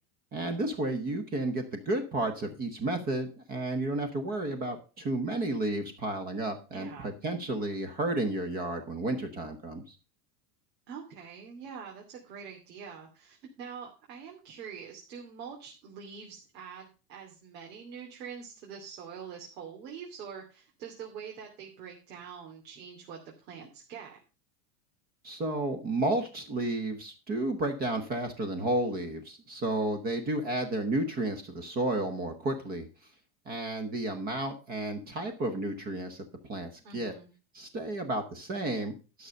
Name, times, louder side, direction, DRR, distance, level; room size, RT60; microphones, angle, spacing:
voice 1, 0.3-10.0 25.2-32.9 33.5-36.2 36.5-37.1 37.5-39.3, right 2 dB, 20° right, 7 dB, 0.9 m, -32 dB
voice 2, 6.7-7.1 10.9-24.2 36.8-37.3, right 7 dB, 85° right, 0 dB, 2.8 m, -45 dB
12.0 x 6.5 x 5.3 m, 0.34 s
supercardioid pair, 175°, 49 cm